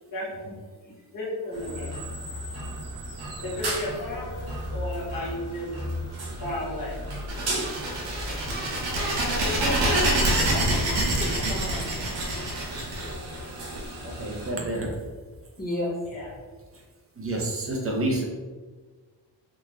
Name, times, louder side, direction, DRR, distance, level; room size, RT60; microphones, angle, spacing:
voice 1, 1.1-2.0 3.4-5.7 6.4-7.0 16.0-16.3, left 1 dB, 50° left, -6 dB, 1.1 m, -33 dB
sound 1, 1.5-14.5, right 1 dB, 60° right, 0.9 m, -36 dB
sound 2, 7.3-13.8, right 1 dB, 90° right, 1.0 m, -26 dB
voice 2, 9.6-11.9 15.6-15.9, equal, 20° left, -4 dB, 0.9 m, -34 dB
voice 3, 11.0-11.6 14.0-15.0 17.2-18.2, right 1 dB, 30° right, -1 dB, 0.7 m, -29 dB
3.8 x 2.5 x 3.0 m, 1.4 s
wide cardioid pair, 130°, 43 cm